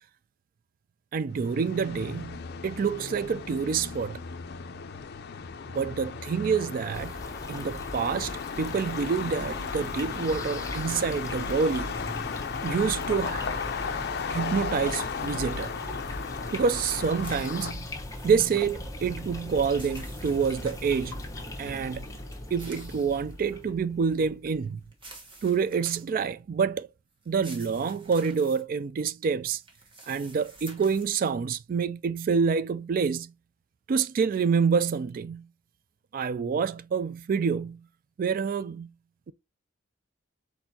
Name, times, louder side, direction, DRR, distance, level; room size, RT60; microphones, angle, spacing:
voice 1, 1.1-4.2 5.7-7.2 7.5-11.9 12.6-13.5 14.3-15.7 16.5-17.9 18.2-21.2 21.6-22.1 22.5-24.8 25.4-26.9 27.3-29.6 30.1-33.3 33.9-35.5 36.1-37.9 38.2-38.9, right 6 dB, 45° right, 0.3 m, -27 dB
sound 1, 1.3-17.7, left 5 dB, 55° left, 0.5 m, -35 dB
sound 2, 6.9-25.1, left 1 dB, 15° left, 1.0 m, -39 dB
sound 3, 17.2-18.3 19.3-20.9 22.1-23.6 24.9-26.2 27.2-28.6 29.6-31.1, right 2 dB, 25° right, 1.2 m, -49 dB
4.4 x 4.3 x 2.7 m
head